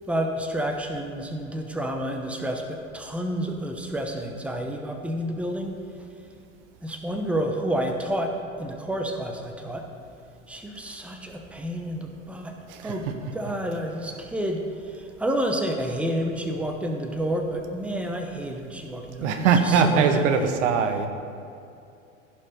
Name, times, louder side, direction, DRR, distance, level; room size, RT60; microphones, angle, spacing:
voice 1, 0.1-5.8 6.8-9.9 10.5-12.5 12.8-13.1 13.3-20.5, right 1 dB, 5° right, 3 dB, 0.9 m, -29 dB
voice 2, 12.7-13.5 13.9-14.3 17.9-18.0 19.2-21.1, right 6 dB, 65° right, 8 dB, 1.2 m, -23 dB
15.5 x 5.3 x 5.2 m, 2.6 s
hypercardioid pair, 100°, 39 cm